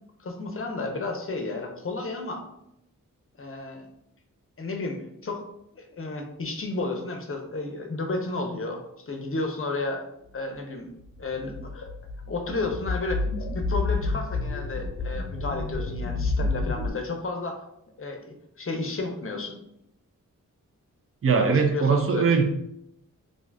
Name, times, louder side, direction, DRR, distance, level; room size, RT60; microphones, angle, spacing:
voice 1, 0.2-2.4 3.4-3.9 4.6-5.4 5.7-10.0 10.3-10.9 11.2-11.9 12.3-13.2 13.5-17.6 18.0-19.6 21.4-22.3, left 3 dB, 40° left, 3 dB, 0.6 m, -32 dB
sound 1, 11.1-16.9, left 3 dB, 85° left, 0.6 m, -29 dB
voice 2, 21.2-22.4, right 5 dB, 45° right, 5 dB, 0.5 m, -21 dB
2.6 x 2.4 x 3.3 m, 0.77 s
wide cardioid pair, 70°, 33 cm